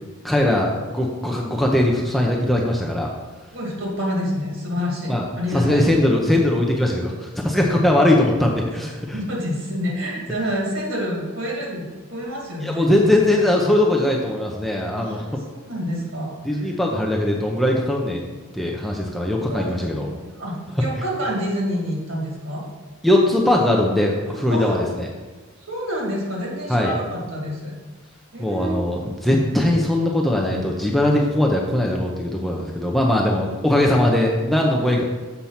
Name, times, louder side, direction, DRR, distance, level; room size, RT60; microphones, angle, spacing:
voice 1, 0.2-3.1 5.1-5.2 5.5-9.2 12.6-15.2 16.4-18.2 18.5-20.1 23.0-25.1 26.7-26.9 28.4-35.0, left 1 dB, ahead, -1 dB, 0.6 m, -20 dB
voice 2, 3.5-5.9 9.1-13.0 15.0-15.4 15.6-16.7 19.5-19.8 20.1-22.7 24.5-24.8 25.7-27.7 28.3-28.7, equal, 60° right, -2 dB, 2.2 m, -28 dB
7.1 x 4.4 x 5.7 m, 1.3 s
head